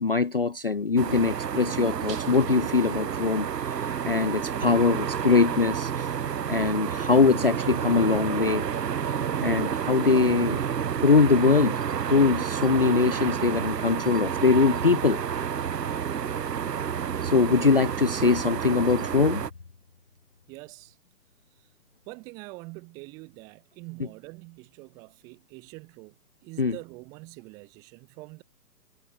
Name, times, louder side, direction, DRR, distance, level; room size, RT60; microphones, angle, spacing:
voice 1, 0.0-6.1 6.5-8.7 9.4-10.6 11.0-11.8 12.1-15.2 17.2-19.4 26.6-26.8, left 4 dB, 40° left, 0.4 m, -22 dB
sound 1, 1.0-19.5, right 8 dB, 85° right, 1.6 m, -30 dB
voice 2, 20.5-20.9 22.1-26.1 26.4-28.4, right 26 dB, 5° right, 1.0 m, -44 dB
hypercardioid pair, 170°, 48 cm